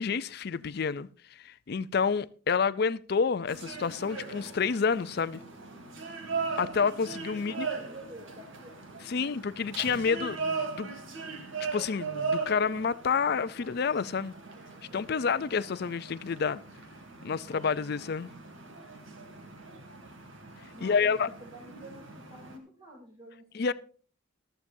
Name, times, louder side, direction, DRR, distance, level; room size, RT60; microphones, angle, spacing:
voice 1, 0.0-5.4 6.6-7.7 9.1-10.9 11.7-14.3 14.9-16.6 17.2-18.3 20.8-21.3 23.5-23.7, left 5 dB, 50° left, 0.4 m, -29 dB
sound 1, 3.5-22.6, right 4 dB, 75° right, 2.4 m, -39 dB
voice 2, 7.5-9.3 20.7-23.7, right 1 dB, 25° right, 3.1 m, -49 dB
14.5 x 13.0 x 2.7 m
head